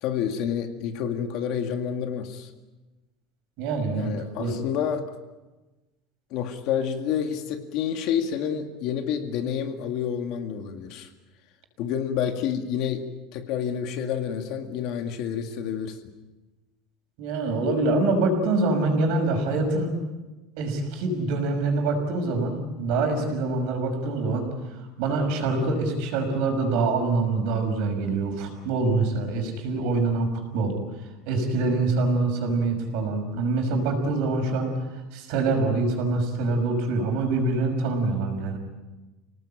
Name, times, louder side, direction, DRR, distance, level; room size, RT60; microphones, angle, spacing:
voice 1, 0.0-2.5 3.9-5.1 6.3-11.1 11.8-16.0, left 8 dB, 45° left, 6 dB, 2.1 m, -29 dB
voice 2, 3.6-4.5 17.2-19.9 20.6-24.5 25.0-30.8 31.2-34.7 35.1-38.6, right 3 dB, 55° right, 4 dB, 5.9 m, -25 dB
29.0 x 18.5 x 8.9 m, 1.1 s
cardioid pair, 180°, 0 cm